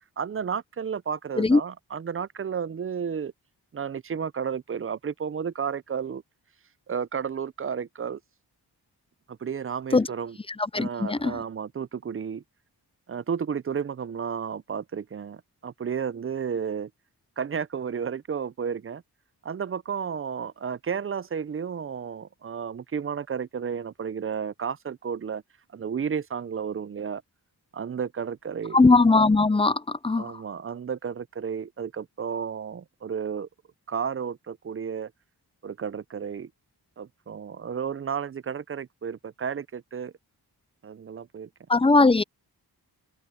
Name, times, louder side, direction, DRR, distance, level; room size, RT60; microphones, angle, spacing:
voice 1, 0.2-3.3 3.7-6.2 6.9-8.2 9.3-10.4 10.7-12.4 13.1-16.9 17.4-19.0 19.4-25.4 25.7-27.2 27.7-28.8 30.2-33.5 33.9-35.1 35.6-36.5 37.0-40.1 40.8-41.5, right 7 dB, 35° right, 0.5 m, -32 dB
voice 2, 10.7-11.4 28.7-30.3 41.7-42.2, left 3 dB, 15° left, 0.5 m, -19 dB
cardioid pair, 70°, 40 cm